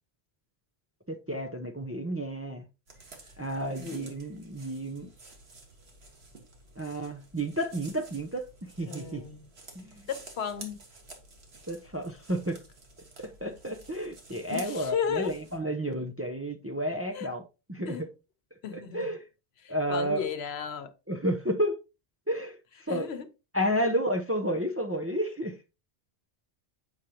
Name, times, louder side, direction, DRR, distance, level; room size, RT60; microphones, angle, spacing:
voice 1, 1.1-2.6 3.4-5.1 6.8-9.2 9.8-10.0 11.7-12.6 13.2-17.4 17.7-17.9 18.7-19.2 19.7-20.2 21.1-21.8 22.3-22.5 22.9-23.1 23.5-25.5, equal, 15° right, 0.5 m, -31 dB
sound 1, 2.9-15.6, right 2 dB, 90° right, 1.8 m, -51 dB
voice 2, 3.8-4.1 8.9-9.5 10.1-10.8 14.5-15.3 17.1-17.3 17.8-18.1 18.6-19.1 19.6-20.9 22.9-23.3, left 7 dB, 85° left, 1.1 m, -34 dB
8.0 x 5.0 x 2.9 m
omnidirectional pair, 1.1 m